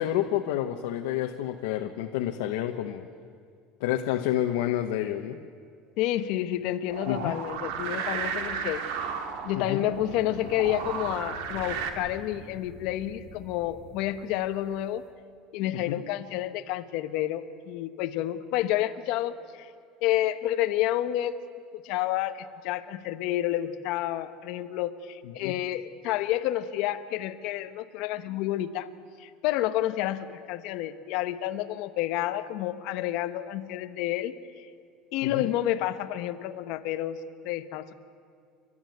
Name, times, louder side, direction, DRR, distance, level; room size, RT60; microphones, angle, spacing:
voice 1, 0.0-3.1 3.8-5.4 7.1-7.4 9.5-9.9 15.7-16.0 25.2-25.6 35.2-35.5, left 12 dB, 85° left, 4 dB, 1.1 m, -29 dB
voice 2, 6.0-9.1 9.4-15.0 15.5-19.7 20.0-21.4 21.8-28.9 29.2-34.3 35.1-37.9, left 13 dB, 55° left, 10 dB, 1.0 m, -30 dB
sound 1, 6.9-11.9, right 6 dB, 70° right, 2.2 m, -34 dB
sound 2, 9.9-14.9, left 1 dB, 10° left, 5.5 m, -47 dB
29.5 x 12.5 x 9.4 m, 2.3 s
cardioid pair, 175°, 0 cm